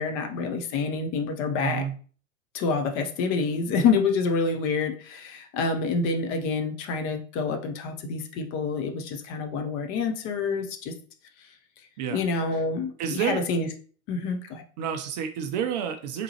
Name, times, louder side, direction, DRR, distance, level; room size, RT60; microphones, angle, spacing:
voice 1, 0.0-1.8 2.5-10.9 11.4-11.5 12.1-13.7 14.1-14.6, left 4 dB, 30° left, 6 dB, 0.5 m, -27 dB
voice 2, 1.6-1.9 12.0-12.2 12.5-12.6 13.0-13.4 14.8-16.2, right 8 dB, 35° right, 6 dB, 0.4 m, -29 dB
3.6 x 2.9 x 2.9 m, 0.42 s
figure-of-eight pair, 95°, 40 cm